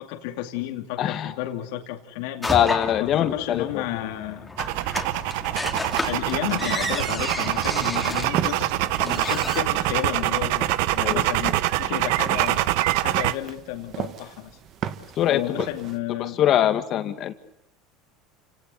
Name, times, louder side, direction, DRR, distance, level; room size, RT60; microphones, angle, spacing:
voice 1, 0.0-2.7 3.0-4.5 6.0-12.7 13.0-14.6 15.3-16.4, left 13 dB, 75° left, 5 dB, 2.5 m, -32 dB
voice 2, 1.0-1.3 2.5-3.8 11.0-11.2 15.2-15.4 16.4-17.3, left 11 dB, 45° left, 9 dB, 2.1 m, -22 dB
sound 1, 2.4-9.6, left 2 dB, 5° left, 3.0 m, -32 dB
sound 2, 4.6-13.3, right 16 dB, 70° right, 1.0 m, -25 dB
sound 3, 8.0-16.0, right 9 dB, 40° right, 1.8 m, -36 dB
29.5 x 18.0 x 8.4 m, 0.75 s
supercardioid pair, 135°, 0 cm